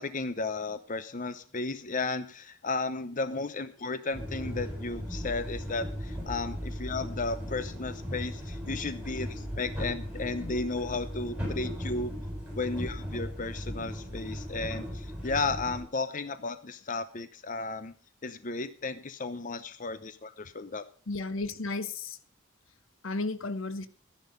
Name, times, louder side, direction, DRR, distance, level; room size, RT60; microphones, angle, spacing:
voice 1, 0.0-12.1 12.6-17.9 18.2-20.8, left 3 dB, 40° left, 0.8 m, -34 dB
sound 1, 4.1-15.8, equal, 5° right, 7.1 m, -37 dB
voice 2, 21.1-22.2 23.0-23.9, left 3 dB, 75° left, 1.1 m, -34 dB
13.5 x 10.5 x 5.3 m
head